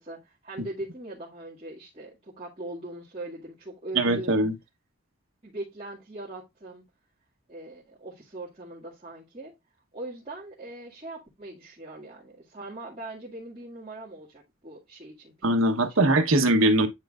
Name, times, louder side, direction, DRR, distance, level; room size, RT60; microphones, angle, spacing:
voice 1, 0.0-4.4 5.4-6.8 7.5-9.5 9.9-15.3 16.0-16.1, right 2 dB, 30° right, 2.0 m, -41 dB
voice 2, 3.9-4.5 15.4-16.9, right 1 dB, 90° right, 1.2 m, -21 dB
9.5 x 4.6 x 2.4 m
head